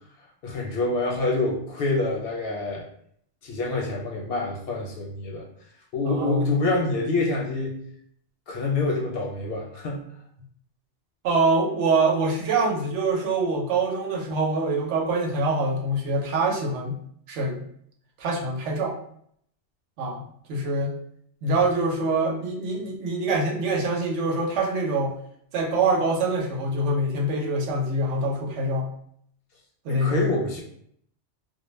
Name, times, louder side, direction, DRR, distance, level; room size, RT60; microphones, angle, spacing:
voice 1, 0.4-2.8 3.4-5.5 5.9-7.8 8.5-10.0 29.9-30.6, left 2 dB, 65° left, 0 dB, 0.7 m, -26 dB
voice 2, 6.0-6.6 11.2-17.0 17.3-17.6 18.2-18.9 20.0-20.2 20.5-20.9 21.4-25.1 25.5-28.9 29.8-30.4, right 2 dB, 80° right, 0 dB, 0.9 m, -24 dB
2.1 x 2.0 x 3.0 m, 0.67 s
omnidirectional pair, 1.2 m